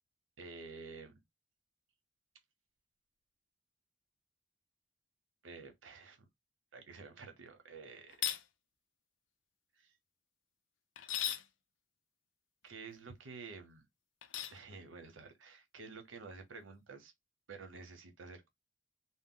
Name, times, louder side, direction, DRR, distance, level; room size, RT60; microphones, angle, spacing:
voice 1, 0.4-1.1 5.4-6.3 6.7-8.2 9.8-9.9 12.6-13.8 14.5-17.1 17.5-18.5, right 4 dB, 90° right, 0.7 m, -50 dB
sound 1, 8.1-8.4 11.0-11.5 14.2-14.6, left 11 dB, 75° left, 0.4 m, -36 dB
2.1 x 2.0 x 3.7 m
head